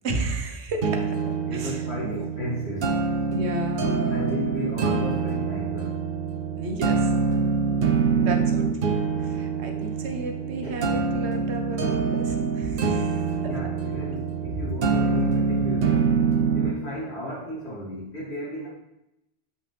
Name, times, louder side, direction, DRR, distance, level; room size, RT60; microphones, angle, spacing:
voice 1, 0.0-1.2 1.5-2.3 3.3-4.4 6.6-7.1 8.2-13.5, right 2 dB, 80° right, 4 dB, 1.2 m, -33 dB
sound 1, 0.8-16.8, right 5 dB, 60° right, 0.9 m, -25 dB
voice 2, 1.1-3.0 4.1-6.0 7.3-7.4 8.5-8.6 10.4-10.7 13.3-16.1 16.5-18.7, left 1 dB, 70° left, -6 dB, 2.5 m, -34 dB
7.5 x 5.6 x 3.3 m, 0.90 s
omnidirectional pair, 1.1 m